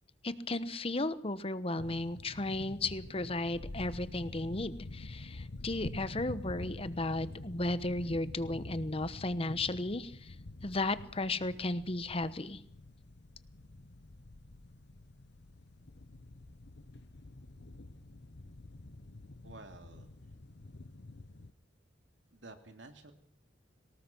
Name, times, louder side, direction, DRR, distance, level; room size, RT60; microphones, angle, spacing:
voice 1, 0.2-10.3 10.6-12.6, left 2 dB, 30° left, 14 dB, 1.1 m, -35 dB
sound 1, 1.8-21.5, left 2 dB, 60° left, 0.9 m, -47 dB
voice 2, 19.4-20.1 22.3-23.1, right 2 dB, 75° right, 6 dB, 2.8 m, -51 dB
24.0 x 19.0 x 6.2 m, 0.64 s
head